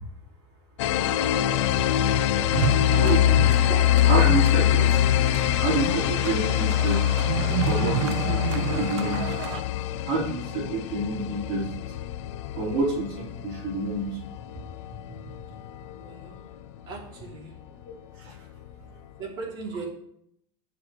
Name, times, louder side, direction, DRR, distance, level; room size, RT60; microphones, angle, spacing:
sound 1, 0.8-16.2, left 12 dB, 75° left, 0.6 m, -24 dB
sound 2, 2.5-9.6, right 8 dB, 70° right, 1.0 m, -31 dB
voice 1, 3.0-3.5 4.1-5.2 5.6-7.2 7.7-9.3 10.0-11.7 12.5-14.2 18.2-18.3, right 2 dB, 45° right, -5 dB, 4.5 m, -28 dB
voice 2, 16.0-16.4 16.9-17.5 19.2-19.9, right 4 dB, 30° right, -1 dB, 3.0 m, -37 dB
19.0 x 6.9 x 3.2 m, 0.72 s
supercardioid pair, 180°, 15 cm